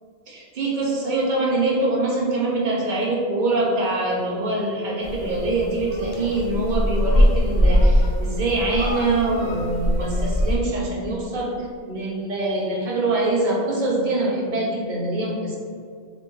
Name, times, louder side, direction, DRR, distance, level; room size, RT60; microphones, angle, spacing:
voice 1, 0.3-15.6, right 2 dB, 50° right, -3 dB, 0.7 m, -24 dB
sound 1, 5.0-10.6, equal, 50° left, 0.6 m, -21 dB
3.3 x 2.7 x 3.0 m, 2.1 s
omnidirectional pair, 1.2 m